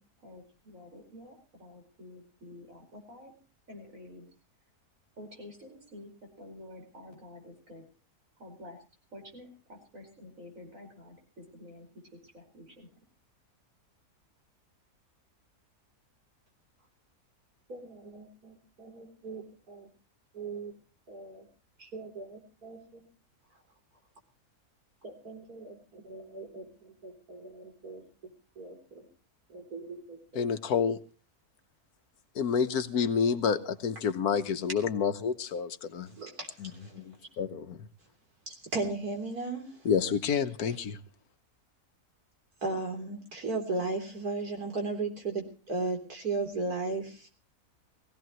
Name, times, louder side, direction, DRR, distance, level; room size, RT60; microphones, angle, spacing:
voice 1, 0.0-3.3 3.7-4.3 5.2-7.8 8.4-8.8 9.1-12.9, left 1 dB, 60° right, 2 dB, 5.6 m, -49 dB
voice 2, 17.7-19.9 20.3-20.7 21.1-21.5 21.8-23.0 25.0-28.0 28.6-29.1 29.5-30.4 36.1-37.1 38.5-39.9 40.7-40.8 42.6-47.3, right 3 dB, 75° right, 3 dB, 3.9 m, -37 dB
voice 3, 30.3-31.0 32.3-36.1 36.6-37.0 37.4-37.8 39.8-41.0, left 6 dB, 80° left, 10 dB, 1.5 m, -29 dB
21.0 x 16.0 x 3.1 m, 0.36 s
omnidirectional pair, 1.6 m